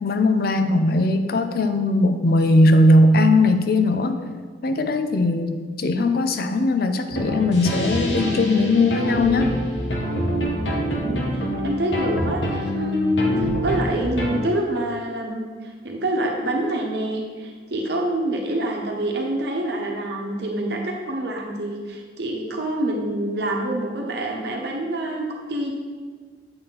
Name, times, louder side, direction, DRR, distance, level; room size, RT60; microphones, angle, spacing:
voice 1, 0.0-4.2 4.6-9.5, left 2 dB, 60° left, 8 dB, 0.5 m, -19 dB
sound 1, 7.1-14.4, equal, 85° left, 1.2 m, -25 dB
voice 2, 11.0-25.7, right 1 dB, 65° right, 0 dB, 1.0 m, -26 dB
7.8 x 4.3 x 3.9 m, 1.5 s
head